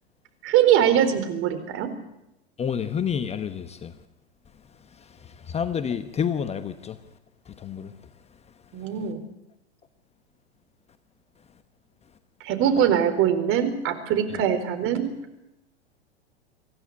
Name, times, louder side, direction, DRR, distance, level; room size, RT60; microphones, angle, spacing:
voice 1, 0.4-1.9 8.7-9.2 12.4-15.1, right 9 dB, 40° right, 4.3 m, -22 dB
voice 2, 2.6-4.0 5.0-7.0 7.5-7.9 14.3-14.4, left 7 dB, 20° left, 1.1 m, -29 dB
25.0 x 16.5 x 9.7 m
hypercardioid pair, 105°, 33 cm